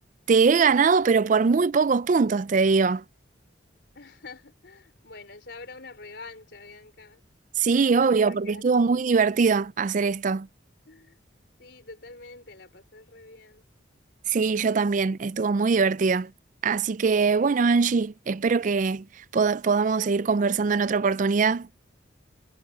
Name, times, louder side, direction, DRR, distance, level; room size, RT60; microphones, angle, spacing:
voice 1, 0.3-3.0 7.6-10.5 14.3-16.3 16.6-19.0 19.3-21.7, right 5 dB, 40° right, 0.4 m, -22 dB
voice 2, 3.9-7.2 7.8-9.0 10.9-11.2 11.6-13.7, left 3 dB, 60° left, 4.1 m, -46 dB
head